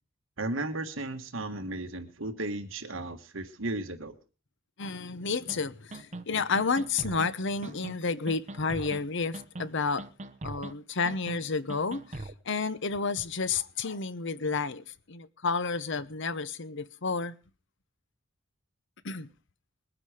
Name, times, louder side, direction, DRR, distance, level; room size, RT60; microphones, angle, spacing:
voice 1, 0.4-4.2, right 2 dB, 75° right, 1.5 m, -35 dB
voice 2, 4.8-10.0 10.4-17.3 19.0-19.3, left 4 dB, 65° left, 0.9 m, -31 dB
sound 1, 5.5-5.6 5.9-6.2 6.6-7.3 7.6-8.0 8.3-9.0 9.3-9.7 10.0-10.7 11.1-11.4 11.7-12.3, right 2 dB, 35° right, 1.0 m, -40 dB
21.5 x 9.8 x 4.9 m
head